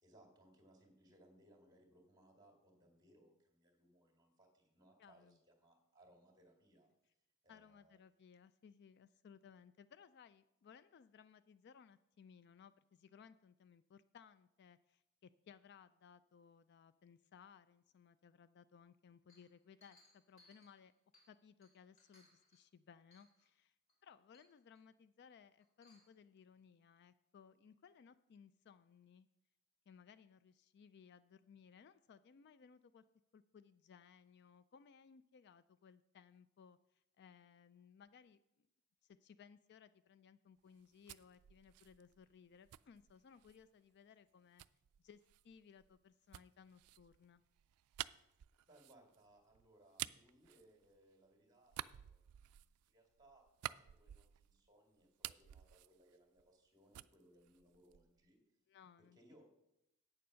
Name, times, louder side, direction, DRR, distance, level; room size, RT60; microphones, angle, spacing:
voice 1, 0.0-6.9 7.4-8.0 48.6-58.4 59.0-59.4, right 1 dB, 20° right, 1 dB, 2.2 m, -68 dB
voice 2, 5.0-5.4 7.5-20.9 21.3-23.8 24.0-29.3 29.9-33.0 33.3-38.7 39.0-44.6 45.0-47.4 58.7-59.2, left 7 dB, 50° left, 14 dB, 0.3 m, -62 dB
Chink clink, 19.3-21.4 21.6-22.6 23.1-23.5 23.9-24.0 24.3-24.8 25.6-26.2, left 2 dB, 35° left, 3.0 m, -70 dB
sound 1, 40.7-43.7 44.6-51.3 51.6-54.7 55.0-56.7 56.9-58.3, right 14 dB, 85° right, 0.3 m, -51 dB
8.6 x 6.9 x 6.3 m, 0.84 s
head